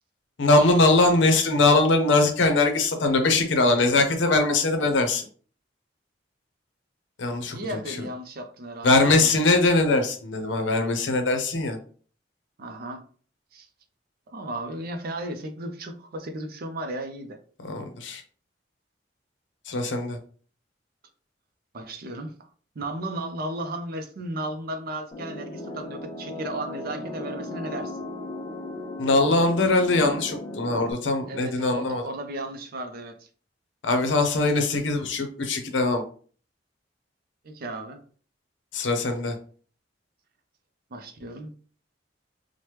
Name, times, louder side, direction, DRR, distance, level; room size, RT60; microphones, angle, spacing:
voice 1, 0.4-5.3 7.2-8.1 8.8-11.8 17.6-18.2 19.7-20.2 29.0-32.0 33.8-36.0 38.7-39.4, left 2 dB, 85° left, 7 dB, 0.6 m, -22 dB
voice 2, 7.5-9.4 12.6-13.0 13.5-13.7 14.3-17.4 21.7-22.5 22.8-28.0 31.3-33.3 37.4-38.0 40.9-41.5, right 1 dB, 55° right, 7 dB, 0.5 m, -35 dB
sound 1, 25.1-30.9, left 1 dB, 25° left, 0.4 m, -36 dB
3.2 x 2.1 x 3.0 m, 0.43 s
head